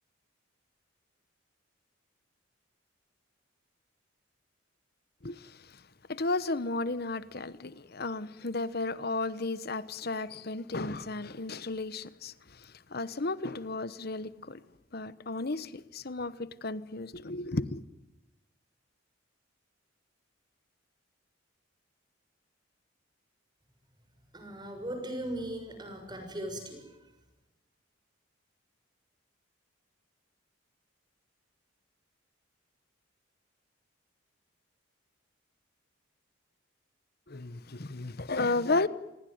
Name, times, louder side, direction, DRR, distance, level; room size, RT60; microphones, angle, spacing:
voice 1, 5.2-5.8 6.1-14.6 14.9-17.8 37.3-38.9, left 3 dB, 50° left, 1.1 m, -34 dB
voice 2, 24.3-26.8, right 1 dB, 20° right, 6.7 m, -38 dB
28.0 x 22.0 x 9.5 m
head